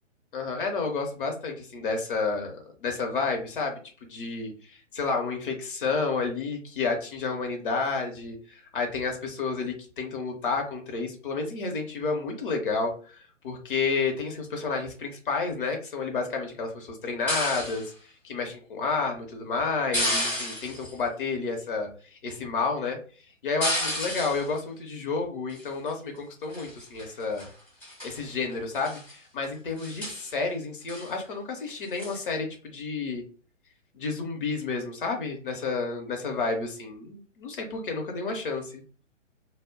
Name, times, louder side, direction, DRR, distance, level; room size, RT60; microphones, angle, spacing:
voice 1, 0.3-13.2 13.4-17.9 18.2-21.9 22.2-23.0 23.4-27.5 28.0-33.2 33.9-38.8, left 4 dB, 45° left, 2 dB, 0.8 m, -30 dB
sound 1, 17.3-17.9 19.9-20.9 23.6-24.5 25.5-25.9 26.5-27.1 27.4-27.5 27.8-28.2 28.7-29.1 29.4-29.5 29.8-30.3 30.9-31.1 32.0-32.2, left 1 dB, 5° left, 0.6 m, -31 dB
2.1 x 2.1 x 3.5 m, 0.39 s
figure-of-eight pair, 140°, 38 cm